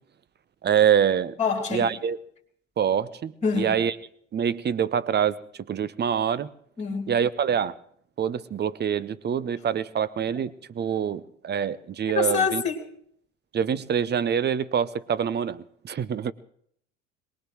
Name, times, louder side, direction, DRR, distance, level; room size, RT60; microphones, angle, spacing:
voice 1, 0.6-1.4 1.7-2.2 2.8-3.9 4.3-5.4 5.7-6.5 7.1-7.7 8.2-12.6 13.5-16.3, right 8 dB, 25° right, 18 dB, 0.8 m, -25 dB
voice 2, 1.4-1.9 3.4-3.8 6.8-7.1 12.1-12.9, left 5 dB, 15° left, 3 dB, 3.1 m, -25 dB
22.5 x 20.0 x 3.1 m, 0.65 s
hypercardioid pair, 75°, 39 cm